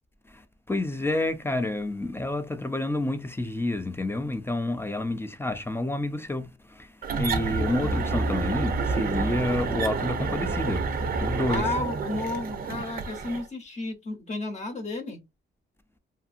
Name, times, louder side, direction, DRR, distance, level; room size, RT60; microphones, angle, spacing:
voice 1, 0.7-10.9 11.2-11.6, left 2 dB, 10° left, 0.3 m, -29 dB
sound 1, 7.0-13.5, right 4 dB, 45° right, 0.5 m, -29 dB
voice 2, 11.5-15.2, left 2 dB, 35° left, 0.9 m, -32 dB
2.6 x 2.6 x 2.4 m
cardioid pair, 115°, 20 cm